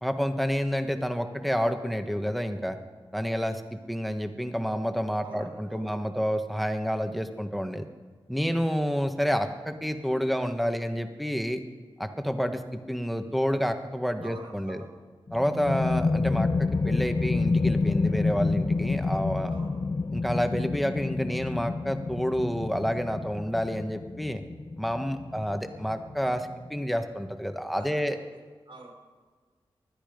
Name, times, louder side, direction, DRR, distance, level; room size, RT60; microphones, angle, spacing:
voice 1, 0.0-2.8 3.1-3.6 3.9-7.8 8.3-11.6 12.0-14.8 15.3-19.5 20.1-24.4 24.8-28.2, equal, ahead, 7 dB, 1.5 m, -29 dB
voice 2, 5.2-5.9 6.3-6.4 14.2-14.9 19.5-19.7 27.8-28.0 28.3-28.9, right 2 dB, 65° right, 1 dB, 4.6 m, -47 dB
sound 1, 15.3-26.7, left 3 dB, 40° left, 0.6 m, -29 dB
20.5 x 12.5 x 5.3 m, 1.5 s
cardioid pair, 55°, 9 cm